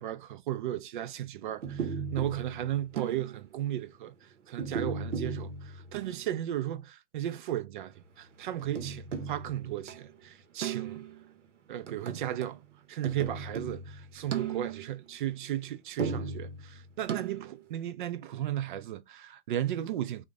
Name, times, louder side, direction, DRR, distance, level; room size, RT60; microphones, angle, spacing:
voice 1, 0.0-11.0 11.7-12.6 12.9-20.2, right 12 dB, 45° right, 0.4 m, -35 dB
sound 1, 1.6-3.5 4.6-6.3 8.6-10.1 10.6-11.3 11.9-12.6 13.0-15.0 16.0-17.6, right 6 dB, 90° right, 0.7 m, -36 dB
3.8 x 2.1 x 3.3 m
hypercardioid pair, 130°, 35 cm